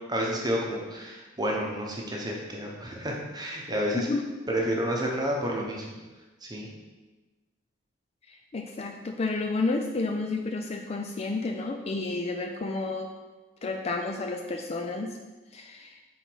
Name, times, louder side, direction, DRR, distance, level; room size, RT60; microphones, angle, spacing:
voice 1, 0.1-4.1 4.5-5.8 6.4-6.7, equal, 20° right, -1 dB, 0.9 m, -30 dB
voice 2, 8.3-13.1 13.6-15.2 15.5-16.0, left 3 dB, 30° left, 4 dB, 0.3 m, -31 dB
5.8 x 4.0 x 4.6 m, 1.2 s
head